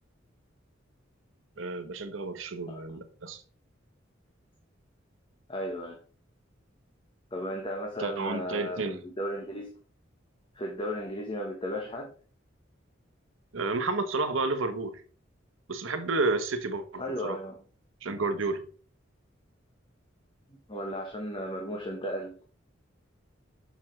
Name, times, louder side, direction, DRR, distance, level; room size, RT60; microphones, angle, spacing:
voice 1, 1.6-3.4 8.0-9.0 13.5-14.9 15.7-17.4 18.0-18.7, right 3 dB, 85° right, 0.9 m, -31 dB
voice 2, 5.5-6.0 7.3-9.7 10.5-12.1 17.0-17.6 20.7-22.3, equal, 25° left, 1.0 m, -35 dB
6.6 x 6.0 x 3.2 m
head